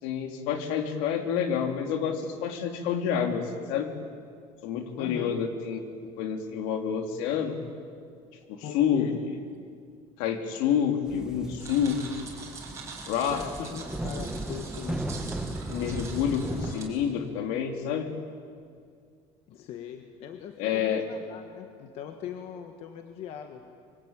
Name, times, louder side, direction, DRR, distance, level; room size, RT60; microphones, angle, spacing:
voice 1, 0.0-3.9 4.6-5.8 6.2-7.6 8.5-9.1 10.2-12.0 13.1-13.4 15.7-18.1 20.6-21.0, left 8 dB, 75° left, 5 dB, 3.2 m, -28 dB
voice 2, 5.0-5.4 8.6-9.2 13.3-15.1 19.5-23.6, left 9 dB, 50° left, 5 dB, 1.6 m, -40 dB
sound 1, 11.0-16.7, right 1 dB, 5° right, 1.1 m, -36 dB
scrapy autmun walk loop, 11.6-16.8, right 4 dB, 20° right, 4.9 m, -44 dB
26.0 x 24.0 x 8.9 m, 2.2 s
cardioid pair, 175°, 14 cm